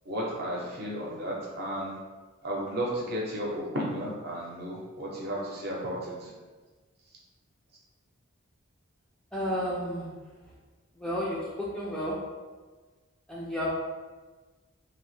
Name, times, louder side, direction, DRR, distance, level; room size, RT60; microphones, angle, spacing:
voice 1, 0.1-2.0 2.4-6.3, equal, 45° right, -4 dB, 0.7 m, -33 dB
voice 2, 9.3-10.1 11.0-12.2 13.3-13.7, equal, 5° left, -7 dB, 0.3 m, -31 dB
3.0 x 2.0 x 3.1 m, 1.3 s
head